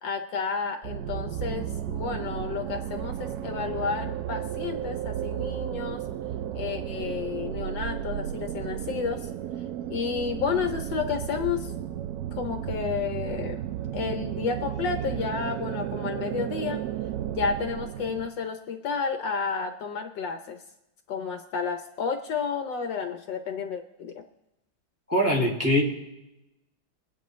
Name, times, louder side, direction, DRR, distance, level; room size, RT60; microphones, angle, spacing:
voice 1, 0.0-6.0 6.5-9.3 9.9-11.7 12.3-13.6 13.9-16.8 17.3-20.6 21.1-24.2, left 6 dB, 70° left, 6 dB, 1.4 m, -31 dB
sound 1, 0.8-18.3, right 11 dB, 80° right, 0.8 m, -33 dB
voice 2, 25.1-25.8, equal, 5° right, -2 dB, 2.0 m, -22 dB
24.0 x 8.7 x 3.1 m, 0.91 s
omnidirectional pair, 2.2 m